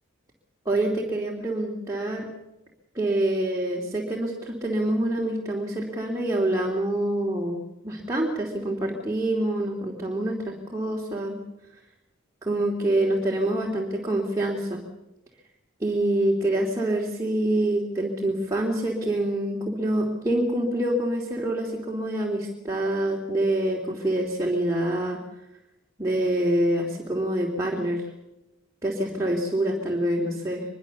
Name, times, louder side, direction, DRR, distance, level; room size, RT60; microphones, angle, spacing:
voice 1, 0.6-2.3 2.9-11.4 12.4-14.8 15.8-25.2 26.0-28.1 28.8-30.6, right 1 dB, 15° right, -2 dB, 2.9 m, -26 dB
24.0 x 22.5 x 7.0 m, 0.93 s
head